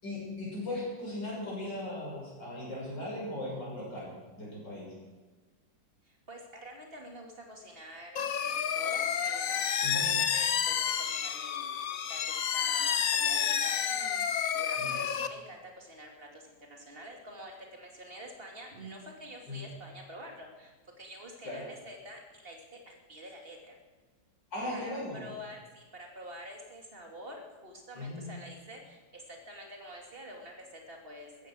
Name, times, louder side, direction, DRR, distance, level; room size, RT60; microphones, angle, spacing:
voice 1, 0.0-4.1 4.4-4.9 9.8-10.1 14.8-15.0 19.5-19.7 21.4-21.6 24.5-25.3 28.0-28.2, left 1 dB, 75° left, -6 dB, 7.3 m, -38 dB
voice 2, 6.0-23.8 24.7-31.5, equal, 30° right, 1 dB, 2.9 m, -47 dB
sound 1, 8.2-15.3, left 8 dB, 55° left, 1.2 m, -30 dB
16.0 x 14.0 x 6.5 m, 1.3 s
omnidirectional pair, 2.0 m